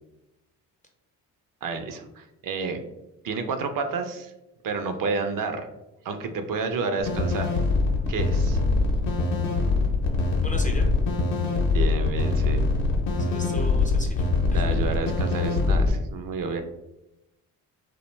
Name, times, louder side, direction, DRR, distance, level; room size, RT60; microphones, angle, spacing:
voice 1, 1.6-2.8 3.2-4.3 4.6-5.6 6.0-7.5 8.1-8.6 11.7-12.7 14.5-16.6, right 4 dB, 50° right, 7 dB, 0.4 m, -30 dB
sound 1, 7.0-15.9, left 3 dB, 75° left, 0.7 m, -23 dB
voice 2, 10.4-10.9 13.2-14.7, left 1 dB, 20° left, 2 dB, 0.3 m, -37 dB
2.3 x 2.1 x 3.1 m, 0.94 s
supercardioid pair, 55°, 43 cm